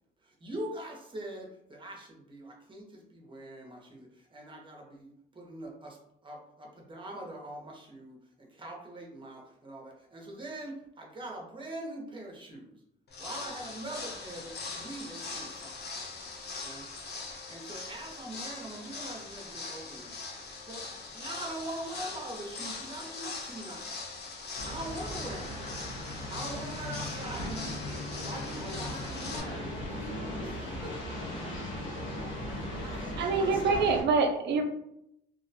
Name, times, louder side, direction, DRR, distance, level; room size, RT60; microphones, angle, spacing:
voice 1, 0.2-12.8 13.2-15.8 16.6-16.9 17.5-20.2 20.7-20.8 21.1-24.1 24.6-25.6 26.3-27.8 28.2-29.7 30.4-31.2 31.8-32.2 32.8-33.9, right 1 dB, 25° right, 0 dB, 0.8 m, -43 dB
sound 1, 13.1-29.4, left 4 dB, 55° left, 0.7 m, -41 dB
sound 2, 24.6-34.0, left 1 dB, 85° left, 0.9 m, -38 dB
voice 2, 28.4-33.5, equal, 15° left, -2 dB, 0.6 m, -49 dB
voice 3, 33.2-34.7, right 4 dB, 60° right, 5 dB, 0.5 m, -26 dB
2.5 x 2.1 x 2.7 m, 0.76 s
cardioid pair, 90°, 20 cm